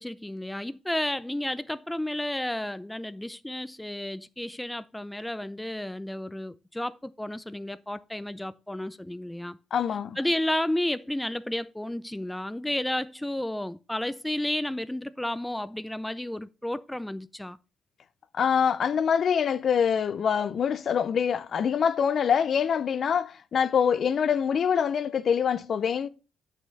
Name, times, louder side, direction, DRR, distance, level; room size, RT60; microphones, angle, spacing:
voice 1, 0.0-9.6 10.2-17.6, left 1 dB, 5° left, 0.5 m, -32 dB
voice 2, 9.7-10.2 18.3-26.1, left 7 dB, 55° left, 0.5 m, -25 dB
8.5 x 6.3 x 4.1 m
cardioid pair, 90°, 0 cm